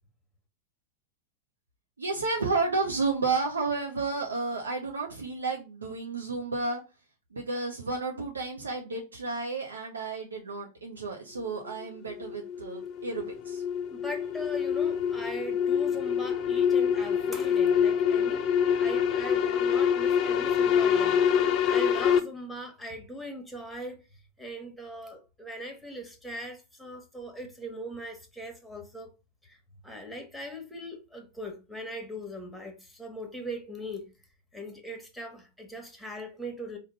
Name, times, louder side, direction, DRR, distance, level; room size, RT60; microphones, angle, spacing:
voice 1, 2.0-6.8 7.3-13.6, right 3 dB, 75° right, 0.7 m, -31 dB
sound 1, 11.7-22.2, left 8 dB, 35° left, 0.5 m, -26 dB
voice 2, 13.9-24.1 24.4-29.1 29.4-29.6 29.8-34.1 34.5-36.8, equal, ahead, 1.1 m, -40 dB
5.0 x 2.2 x 3.9 m
figure-of-eight pair, 90°, 0 cm